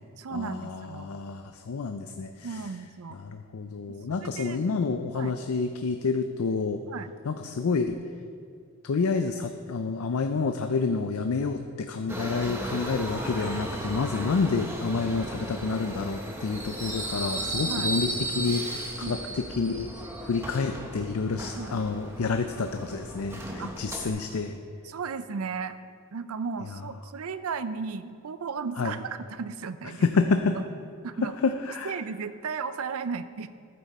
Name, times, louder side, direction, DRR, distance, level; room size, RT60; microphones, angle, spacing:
voice 1, 0.2-1.1 2.4-3.2 3.9-4.6 5.1-5.3 6.9-7.1 17.7-17.9 19.0-19.2 21.5-21.8 23.6-23.7 24.8-25.8 26.1-30.1 30.5-30.6 31.0-31.3 31.8-33.5, right 5 dB, 85° right, 13 dB, 0.5 m, -35 dB
voice 2, 0.9-2.3 3.3-6.8 7.3-8.0 8.9-19.2 19.6-19.9 20.2-24.5 28.8-28.9 30.0-30.5 31.7-31.9, left 4 dB, 90° left, 7 dB, 0.5 m, -28 dB
Subway metro underground, 12.1-24.1, right 1 dB, 10° right, 0.9 m, -35 dB
11.5 x 8.7 x 4.2 m, 2.2 s
head